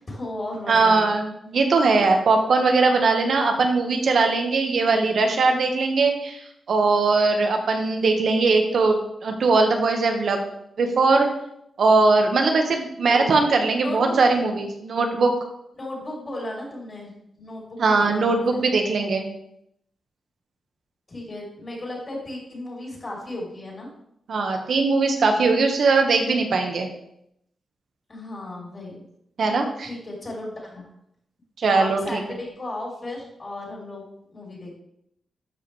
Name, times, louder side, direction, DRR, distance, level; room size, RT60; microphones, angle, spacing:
voice 1, 0.0-1.0 13.0-13.3 13.8-14.2 15.8-18.6 21.1-23.9 28.1-29.0 29.8-30.9 31.7-34.0 34.3-34.7, left 1 dB, 35° left, -3 dB, 3.3 m, -35 dB
voice 2, 0.7-6.4 6.7-10.5 10.8-11.3 11.8-15.3 17.8-19.3 24.3-26.9 29.4-29.9 31.6-32.2, right 3 dB, 70° right, 4 dB, 1.4 m, -20 dB
12.5 x 5.1 x 3.2 m, 0.76 s
cardioid pair, 85°, 0 cm